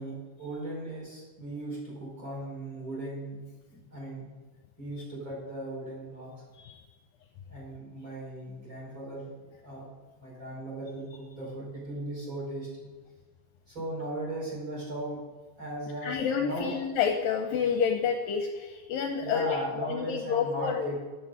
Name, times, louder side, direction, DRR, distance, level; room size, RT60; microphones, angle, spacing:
voice 1, 0.0-3.4 3.7-4.3 4.8-6.3 7.5-9.3 9.6-9.9 10.2-12.9 13.7-15.2 15.6-16.1 16.4-16.8 19.2-21.0, right 1 dB, 20° right, -6 dB, 5.2 m, -37 dB
voice 2, 16.0-20.9, left 7 dB, 75° left, 4 dB, 2.2 m, -29 dB
12.5 x 10.0 x 5.0 m, 1.3 s
omnidirectional pair, 4.5 m